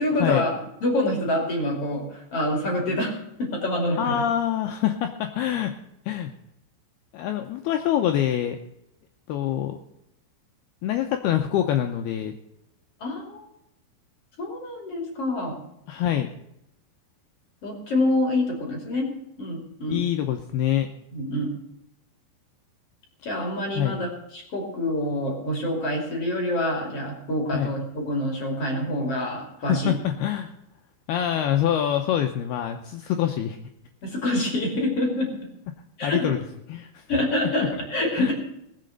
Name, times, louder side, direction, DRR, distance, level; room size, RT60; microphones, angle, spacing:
voice 1, 0.0-4.2 13.0-13.4 14.4-15.6 17.6-19.1 19.4-20.0 21.1-21.5 23.2-29.9 34.0-35.3 36.0-36.3 37.1-38.3, left 1 dB, 35° left, 1 dB, 3.0 m, -26 dB
voice 2, 4.0-5.7 6.1-6.3 7.1-8.6 9.3-9.8 10.8-12.3 15.9-16.3 19.9-20.9 23.7-24.0 27.5-27.7 29.7-30.5 31.1-33.6 36.0-36.4 36.7-37.0 38.2-38.3, left 10 dB, 80° left, 5 dB, 2.4 m, -25 dB
19.5 x 7.6 x 6.5 m, 0.81 s
omnidirectional pair, 5.4 m